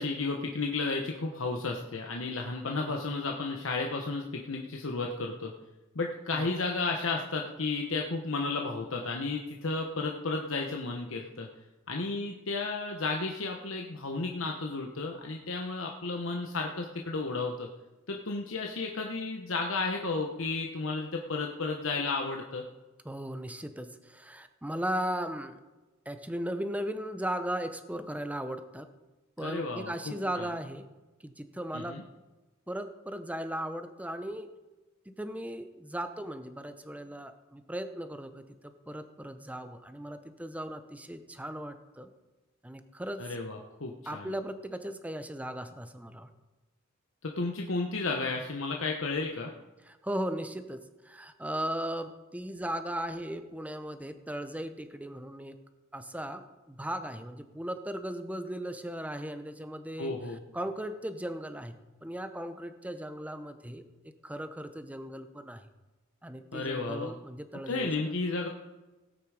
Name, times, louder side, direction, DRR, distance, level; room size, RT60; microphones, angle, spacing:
voice 1, 0.0-5.5 5.9-11.5 11.9-17.7 18.1-22.6 29.4-30.5 31.7-32.0 43.2-44.3 47.2-49.5 60.0-60.4 66.5-67.1 67.7-68.5, left 3 dB, 75° left, 1 dB, 1.0 m, -33 dB
voice 2, 23.0-25.6 26.1-28.9 29.4-30.9 31.2-32.0 32.7-34.5 35.2-42.1 42.6-43.3 44.1-46.3 49.9-55.6 55.9-60.1 60.5-63.8 64.2-65.6 66.2-68.1, right 1 dB, 5° right, 9 dB, 0.8 m, -37 dB
17.0 x 9.0 x 4.9 m, 1.1 s
head